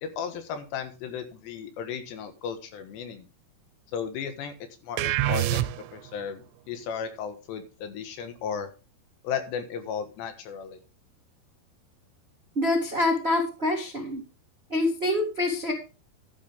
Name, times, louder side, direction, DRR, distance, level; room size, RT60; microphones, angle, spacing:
voice 1, 0.0-3.3 3.9-4.5 4.8-5.7 5.9-8.7 9.2-10.8, left 7 dB, 80° left, 8 dB, 3.7 m, -35 dB
sound 1, 5.0-6.1, right 14 dB, 85° right, 2.8 m, -26 dB
voice 2, 12.5-14.2 14.7-15.7, left 2 dB, 65° right, 2 dB, 0.6 m, -26 dB
12.5 x 10.0 x 3.6 m, 0.32 s
omnidirectional pair, 5.0 m